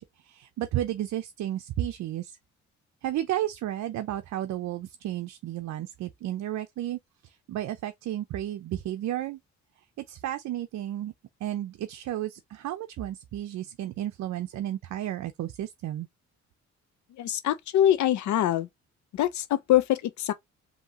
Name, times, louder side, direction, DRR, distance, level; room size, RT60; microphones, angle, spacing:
voice 1, 0.0-2.4 3.0-9.4 10.0-11.1 11.4-16.1, right 12 dB, 65° right, 0.6 m, -33 dB
voice 2, 17.2-18.7 19.1-20.3, left 12 dB, 70° left, 0.6 m, -24 dB
5.3 x 2.8 x 2.9 m
cardioid pair, 90°, 30 cm